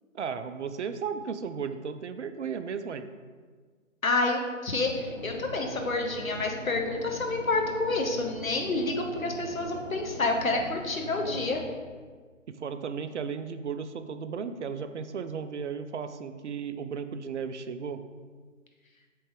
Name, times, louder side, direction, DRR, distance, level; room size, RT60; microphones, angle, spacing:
voice 1, 0.1-3.0 12.5-18.0, right 6 dB, 60° right, 10 dB, 0.5 m, -35 dB
voice 2, 4.0-11.6, left 2 dB, 90° left, 2 dB, 1.2 m, -28 dB
sound 1, 4.9-11.6, equal, 5° left, 0.8 m, -41 dB
7.7 x 3.3 x 3.7 m, 1.5 s
figure-of-eight pair, 145°, 40 cm